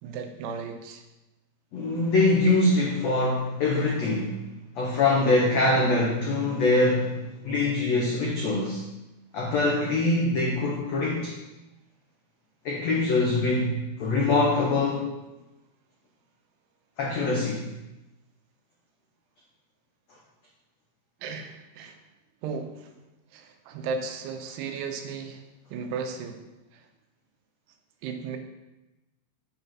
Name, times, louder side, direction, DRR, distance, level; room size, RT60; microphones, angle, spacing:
voice 1, 0.0-1.0 21.2-22.0 22.4-22.9 23.3-25.4 25.7-26.4 26.7-26.9 28.0-28.4, right 5 dB, 85° right, 5 dB, 2.8 m, -35 dB
voice 2, 1.7-4.3 4.8-7.2 7.4-8.8 9.3-11.3 12.6-15.1 17.0-17.7, left 2 dB, 85° left, -3 dB, 1.5 m, -23 dB
7.7 x 5.4 x 5.8 m, 1.0 s
omnidirectional pair, 4.8 m